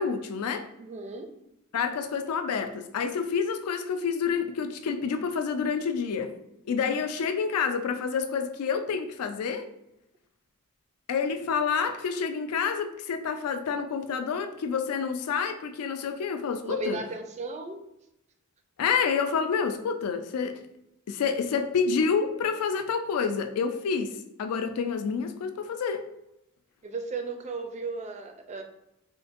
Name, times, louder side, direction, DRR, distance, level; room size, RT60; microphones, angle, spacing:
voice 1, 0.0-0.7 1.7-6.3 6.7-9.7 11.1-17.0 18.8-20.6 21.1-26.1, left 6 dB, 80° left, 8 dB, 0.4 m, -28 dB
voice 2, 0.8-1.3 16.6-17.8 26.8-28.6, right 3 dB, 30° right, 5 dB, 0.3 m, -35 dB
3.8 x 2.5 x 2.5 m, 0.85 s
head